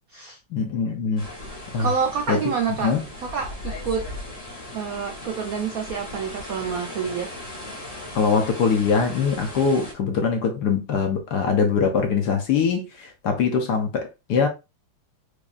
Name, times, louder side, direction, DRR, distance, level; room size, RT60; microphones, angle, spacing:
voice 1, 0.5-1.3 1.7-1.9 2.3-2.4 2.8-3.0 8.1-14.5, left 5 dB, 65° left, 1.1 m, -22 dB
sound 1, 1.2-9.9, left 1 dB, 20° left, 1.1 m, -37 dB
voice 2, 1.8-4.0 4.7-7.3, right 6 dB, 90° right, 0.7 m, -28 dB
4.8 x 2.7 x 2.5 m
omnidirectional pair, 2.3 m